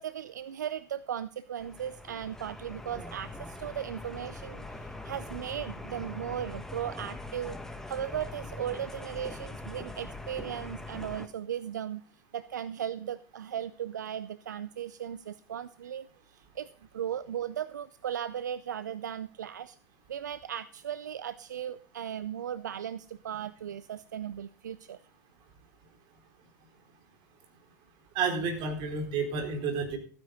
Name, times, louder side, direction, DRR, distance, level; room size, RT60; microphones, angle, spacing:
voice 1, 0.0-7.6 7.9-12.0 12.3-19.8 20.1-25.0, right 9 dB, 85° right, 17 dB, 0.5 m, -37 dB
sound 1, 1.6-11.3, left 2 dB, 5° left, 1.6 m, -42 dB
voice 2, 28.1-30.0, right 5 dB, 55° right, 5 dB, 4.0 m, -30 dB
15.0 x 9.6 x 3.8 m, 0.44 s
hypercardioid pair, 85°, 9 cm